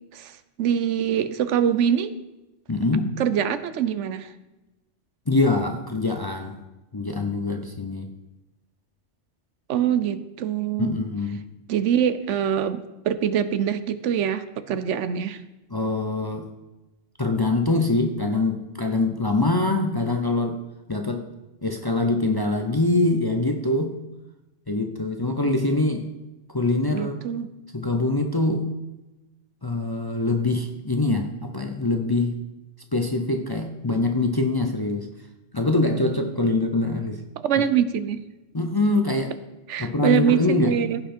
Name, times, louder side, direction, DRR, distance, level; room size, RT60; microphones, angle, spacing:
voice 1, 0.1-2.1 3.2-4.3 9.7-11.0 11.7-15.4 26.9-27.5 37.4-38.2 39.7-41.0, right 9 dB, 75° right, 12 dB, 1.0 m, -24 dB
voice 2, 2.7-3.2 5.3-6.6 6.9-8.1 10.8-11.4 15.7-16.5 17.2-20.6 20.9-21.3 21.6-24.0 24.7-26.1 26.5-27.1 27.7-28.7 29.6-32.4 32.9-35.1 35.5-37.2 38.5-39.4 39.8-40.8, left 2 dB, 25° left, 4 dB, 0.6 m, -24 dB
15.5 x 5.8 x 4.4 m, 1.0 s
omnidirectional pair, 1.2 m